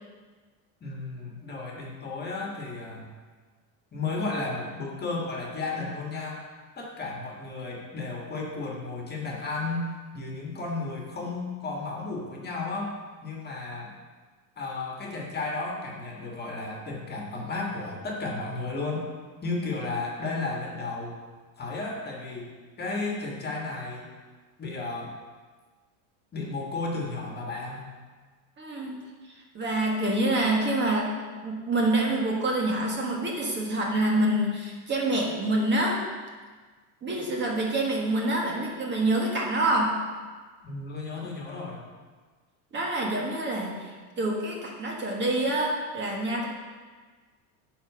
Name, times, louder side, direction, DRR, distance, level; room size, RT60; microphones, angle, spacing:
voice 1, 0.8-3.1 3.9-6.4 6.8-12.9 13.2-13.9 14.6-19.1 19.4-21.2 21.6-24.1 24.6-25.1 26.3-27.9 40.6-41.8, left 3 dB, 25° left, -1 dB, 1.7 m, -33 dB
voice 2, 28.6-29.0 29.3-31.1 31.4-36.0 37.0-40.0 42.7-46.5, right 1 dB, 25° right, -1 dB, 1.4 m, -26 dB
10.0 x 4.3 x 6.7 m, 1.4 s
supercardioid pair, 145°, 41 cm